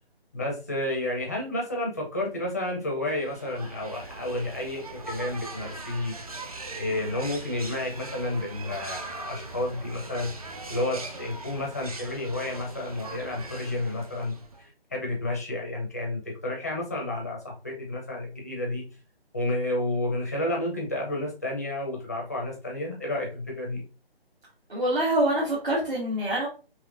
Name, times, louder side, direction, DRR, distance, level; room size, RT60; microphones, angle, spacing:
voice 1, 0.3-6.1 6.7-10.3 10.7-18.8 19.3-23.8, left 1 dB, 15° left, 0 dB, 0.5 m, -31 dB
sound 1, 3.1-14.7, right 2 dB, 35° right, 0.5 m, -40 dB
voice 2, 24.7-26.5, right 1 dB, 55° right, -6 dB, 1.8 m, -25 dB
4.7 x 2.9 x 2.4 m, 0.34 s
figure-of-eight pair, 150°, 31 cm